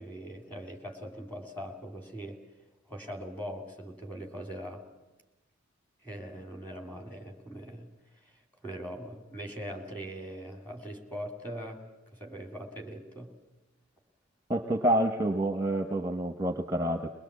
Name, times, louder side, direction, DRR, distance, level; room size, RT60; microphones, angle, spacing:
voice 1, 0.0-2.4 2.9-4.8 6.0-7.9 8.2-11.8 12.1-13.3, equal, 10° left, 3 dB, 2.9 m, -41 dB
voice 2, 14.5-17.1, right 1 dB, 20° right, 7 dB, 1.0 m, -28 dB
22.5 x 21.0 x 8.3 m, 1.1 s
head